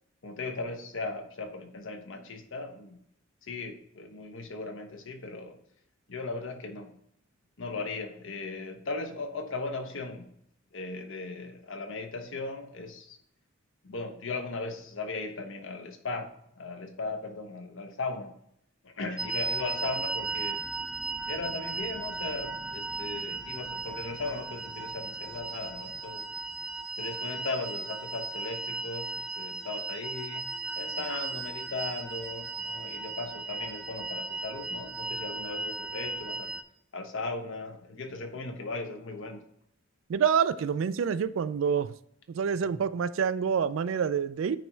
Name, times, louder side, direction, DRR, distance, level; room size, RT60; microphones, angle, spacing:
voice 1, 0.2-3.0 3.4-5.6 6.1-6.9 7.6-10.3 10.7-13.2 13.8-18.3 18.8-20.6 21.3-26.3 27.0-36.6 36.9-39.5, left 3 dB, 70° left, 1.0 m, -37 dB
sound 1, 19.2-36.6, right 3 dB, 5° right, 0.4 m, -36 dB
voice 2, 40.1-41.9 42.3-44.6, right 7 dB, 70° right, 0.3 m, -27 dB
9.2 x 3.1 x 4.5 m
head